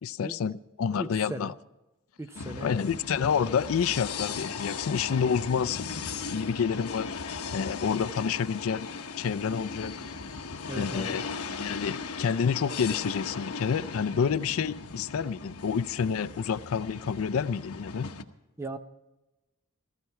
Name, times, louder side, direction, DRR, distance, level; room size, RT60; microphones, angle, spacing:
voice 1, 0.0-1.5 2.6-5.8 6.3-7.1 7.5-8.9 9.2-9.9 10.7-11.3 11.6-18.1, left 6 dB, 65° left, 14 dB, 0.4 m, -28 dB
voice 2, 1.0-1.5 2.2-2.9 10.7-11.2 18.6-18.8, right 1 dB, 10° right, 9 dB, 0.7 m, -38 dB
sound 1, 2.3-18.2, left 5 dB, 85° left, 0.9 m, -38 dB
15.0 x 15.0 x 4.7 m, 1.0 s
head